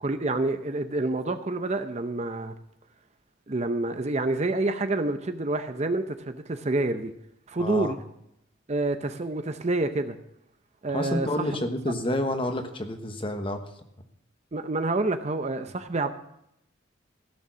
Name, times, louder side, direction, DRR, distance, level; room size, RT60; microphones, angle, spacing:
voice 1, 0.0-2.5 3.5-7.1 7.5-8.0 8.7-10.2 10.8-11.5 14.5-16.1, right 2 dB, 35° right, 0.7 m, -28 dB
voice 2, 7.6-8.0 10.9-13.7, left 1 dB, 25° left, 1.2 m, -29 dB
15.5 x 6.9 x 6.2 m
head